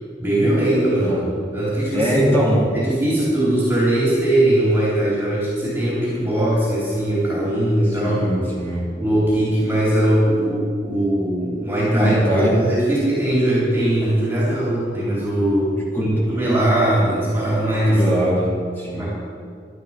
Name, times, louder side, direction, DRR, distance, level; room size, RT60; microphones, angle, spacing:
voice 1, 0.2-1.2 1.5-2.4 2.7-8.2 9.0-18.0 18.9-19.1, right 1 dB, 10° right, -7 dB, 3.8 m, -20 dB
voice 2, 1.9-2.6 8.0-8.8 11.9-12.6 15.9-16.4 17.9-19.1, equal, 10° left, -6 dB, 2.8 m, -22 dB
12.0 x 11.5 x 6.0 m, 2.1 s
head